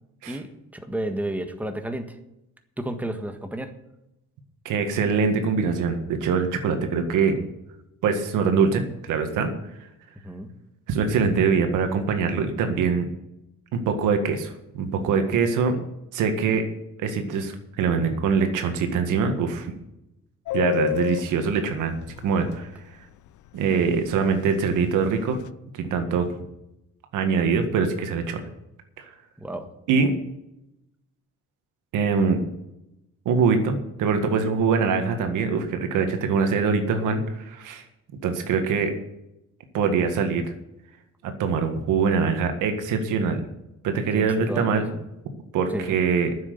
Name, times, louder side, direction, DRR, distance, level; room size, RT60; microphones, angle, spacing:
voice 1, 0.3-2.2 2.8-3.7 10.2-10.5 29.4-29.7 44.1-44.8 45.7-46.0, right 1 dB, 5° right, 6 dB, 1.6 m, -32 dB
voice 2, 4.7-7.4 8.0-9.5 10.9-13.1 13.7-15.8 16.1-16.6 17.0-19.7 20.5-21.9 22.2-22.7 23.5-25.4 25.8-26.3 27.1-28.4 29.0-29.1 29.9-30.1 31.9-32.4 33.3-37.8 38.2-38.9 39.7-40.4 41.2-43.4 43.8-44.9 45.5-46.3, right 5 dB, 90° right, 6 dB, 1.9 m, -23 dB
Subway metro underground, 20.5-22.6 22.9-23.0 23.3-23.5 23.8-24.2 24.5-25.5, left 16 dB, 75° left, 0.6 m, -30 dB
9.9 x 7.5 x 9.3 m, 0.86 s
cardioid pair, 90°, 30 cm